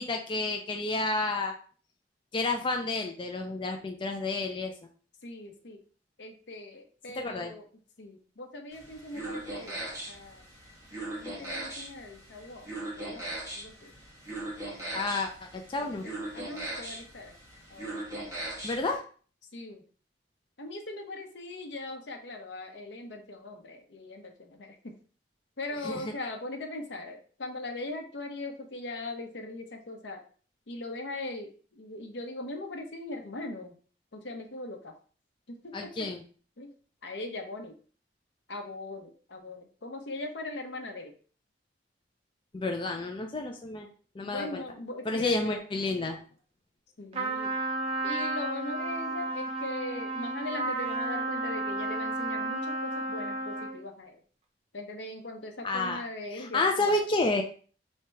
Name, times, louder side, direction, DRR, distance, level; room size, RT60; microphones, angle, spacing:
voice 1, 0.0-1.5 2.3-4.7 7.2-7.5 14.9-16.0 18.6-19.0 25.8-26.1 35.7-36.2 42.5-43.9 44.2-44.6 45.0-46.2 55.6-56.0 56.3-57.4, left 2 dB, 30° left, 3 dB, 0.4 m, -30 dB
voice 2, 5.2-5.8 6.2-7.6 8.0-10.5 11.2-12.7 13.0-13.9 16.3-17.4 17.7-18.3 19.5-19.8 20.6-24.8 25.6-30.2 30.7-33.7 34.1-34.9 35.6-35.7 36.6-36.7 37.0-37.7 38.5-41.1 44.2-45.7 47.0-47.5 48.0-54.2 54.7-57.0, left 2 dB, 75° left, 4 dB, 0.8 m, -40 dB
sound 1, 8.7-19.0, right 1 dB, 20° right, 1.3 m, -39 dB
Trumpet, 47.1-53.8, right 2 dB, 35° right, 0.7 m, -32 dB
3.2 x 2.8 x 4.5 m, 0.41 s
head